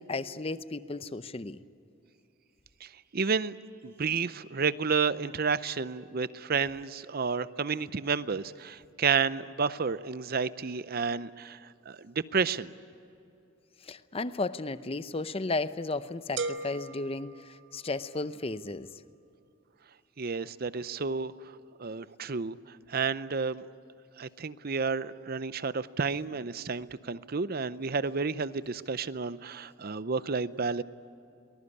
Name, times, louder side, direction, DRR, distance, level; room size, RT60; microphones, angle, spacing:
voice 1, 0.0-1.6 13.8-18.9, left 3 dB, 30° left, 13 dB, 0.7 m, -34 dB
voice 2, 2.8-3.5 3.8-11.6 11.9-12.7 20.2-21.3 21.8-22.6 22.9-23.6 24.2-30.8, right 5 dB, 45° right, 16 dB, 0.6 m, -31 dB
sound 1, 16.4-18.2, right 4 dB, 60° right, 1.2 m, -38 dB
23.5 x 20.5 x 9.8 m, 2.7 s
head